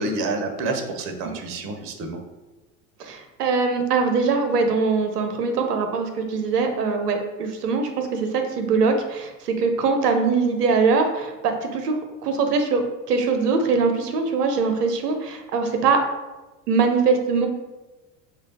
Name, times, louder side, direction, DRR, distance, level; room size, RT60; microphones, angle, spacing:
voice 1, 0.0-2.2, right 2 dB, 30° right, 4 dB, 0.5 m, -28 dB
voice 2, 3.0-12.0 12.2-16.0 16.7-17.5, right 4 dB, 75° right, 5 dB, 0.6 m, -22 dB
3.2 x 2.2 x 3.9 m, 1.1 s
figure-of-eight pair, 75°, 48 cm